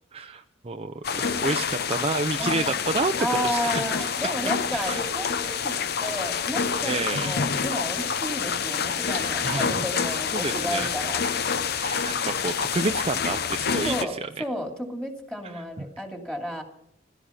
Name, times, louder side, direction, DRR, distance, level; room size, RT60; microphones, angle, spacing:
voice 1, 0.1-4.1 4.4-5.0 6.8-7.3 9.0-9.9 10.3-10.9 11.7-14.3 15.5-15.9, right 3 dB, 30° right, 6 dB, 0.6 m, -30 dB
sound 1, 1.0-14.0, left 6 dB, 55° left, 0.8 m, -27 dB
voice 2, 2.4-2.8 3.2-11.2 13.8-16.6, equal, 5° left, 3 dB, 2.6 m, -32 dB
16.0 x 13.0 x 5.7 m, 0.76 s
head